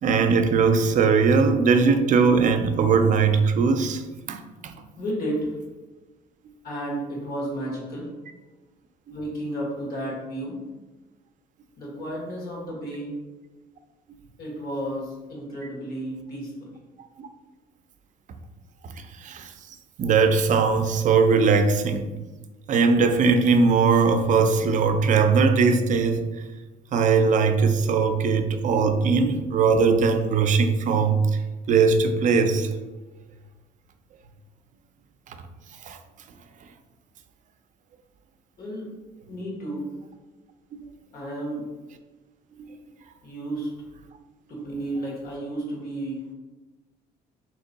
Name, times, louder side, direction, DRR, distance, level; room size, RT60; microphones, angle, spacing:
voice 1, 0.0-4.0 4.3-4.7 9.1-9.2 17.2-17.3 19.2-19.5 20.0-22.1 22.7-26.2 26.9-31.2 31.7-32.7 35.9-36.0 40.7-40.9, right 5 dB, 50° right, 7 dB, 0.5 m, -20 dB
voice 2, 5.0-5.5 6.6-8.1 9.1-10.6 11.8-13.1 14.4-16.7 38.6-38.9 39.3-39.9 41.1-41.7 43.2-43.7 44.6-46.3, right 1 dB, 60° left, -3 dB, 1.5 m, -32 dB
3.5 x 3.0 x 3.9 m, 1.2 s
cardioid pair, 110°, 17 cm